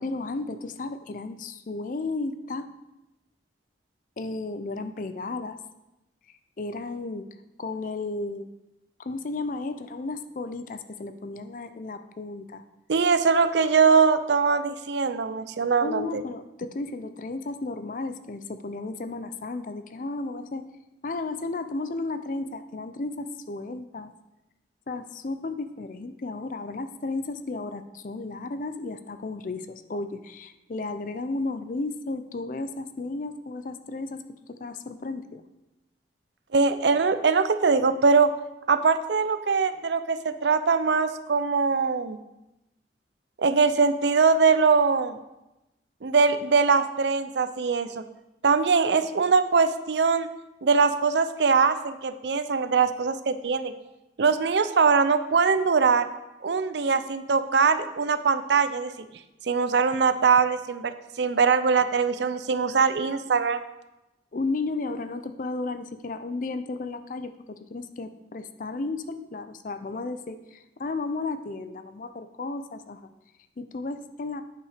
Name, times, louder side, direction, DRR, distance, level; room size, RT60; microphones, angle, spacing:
voice 1, 0.0-2.7 4.2-5.6 6.6-7.3 7.6-8.5 9.0-12.6 15.8-20.6 21.0-24.1 24.9-34.2 34.6-35.4 64.3-73.1 73.6-74.4, left 3 dB, 45° left, 10 dB, 0.4 m, -33 dB
voice 2, 12.9-16.2 36.5-38.3 38.7-42.2 43.4-45.2 46.0-48.0 48.4-50.3 50.6-53.7 54.2-56.1 56.4-58.9 59.4-63.6, right 5 dB, 75° right, 11 dB, 0.5 m, -22 dB
9.3 x 5.7 x 5.0 m, 0.97 s
head